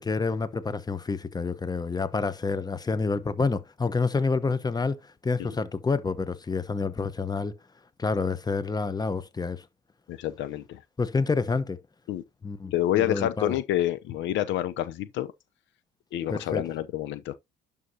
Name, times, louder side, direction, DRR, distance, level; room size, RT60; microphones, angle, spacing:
voice 1, 0.0-5.0 5.2-7.5 8.0-9.6 11.0-11.8 12.4-13.6 16.3-16.6, left 4 dB, 20° left, 1.1 m, -28 dB
voice 2, 10.1-10.8 12.1-12.2 12.7-15.3 16.1-17.4, left 12 dB, 70° left, 0.8 m, -28 dB
11.0 x 5.3 x 2.8 m
supercardioid pair, 70°, 20 cm